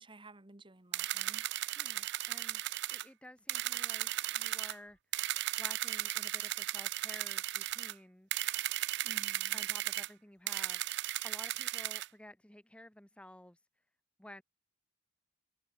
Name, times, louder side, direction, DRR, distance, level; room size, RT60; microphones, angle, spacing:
voice 1, 0.0-1.5 9.0-9.6, right 2 dB, 25° right, 1.4 m, -55 dB
sound 1, 0.9-3.1 3.5-4.7 5.1-7.9 8.3-10.1 10.5-12.1, right 15 dB, 55° right, 0.5 m, -36 dB
voice 2, 1.8-2.6 2.9-8.3 9.5-10.8 11.2-13.6 14.2-14.4, left 1 dB, 5° left, 0.7 m, -53 dB
open air
head